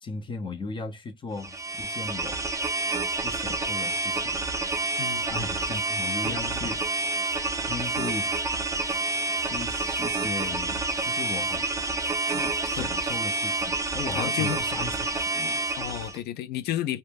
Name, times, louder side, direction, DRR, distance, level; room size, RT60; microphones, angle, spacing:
voice 1, 0.0-2.4 3.2-4.4 5.3-6.8 7.7-8.4 9.4-11.7 12.3-15.6, left 3 dB, 30° left, 0.7 m, -37 dB
sound 1, 1.4-16.2, right 3 dB, 20° right, 0.5 m, -28 dB
voice 2, 5.0-5.5 6.3-6.8 12.8-12.9 14.1-14.6 15.8-17.0, left 12 dB, 75° left, 0.4 m, -32 dB
2.1 x 2.0 x 3.4 m
cardioid pair, 110°, 17 cm